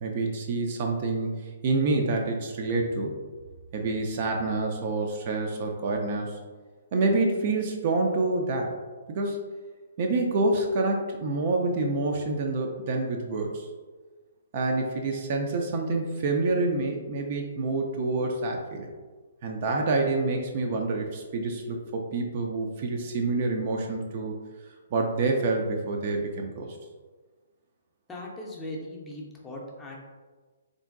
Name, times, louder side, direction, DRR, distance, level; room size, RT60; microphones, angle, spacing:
voice 1, 0.0-1.3 1.6-3.1 3.7-6.4 6.9-8.7 9.1-9.4 10.0-13.7 14.5-18.9 19.4-24.3 24.9-26.8, right 3 dB, 40° right, 2 dB, 0.4 m, -27 dB
voice 2, 28.1-30.0, left 1 dB, 10° left, -3 dB, 0.5 m, -39 dB
3.6 x 2.5 x 2.4 m, 1.4 s
figure-of-eight pair, 125°, 0 cm